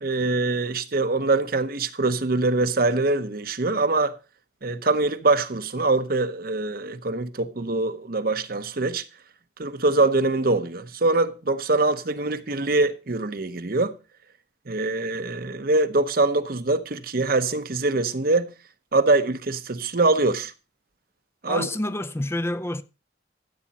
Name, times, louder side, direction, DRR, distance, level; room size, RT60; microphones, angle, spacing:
voice 1, 0.0-4.1 4.6-9.0 9.6-13.9 14.7-18.5 18.9-20.5 21.4-21.7, right 2 dB, 50° right, 0.9 m, -23 dB
voice 2, 21.5-22.8, left 1 dB, 15° left, 0.6 m, -28 dB
14.5 x 8.8 x 4.2 m
head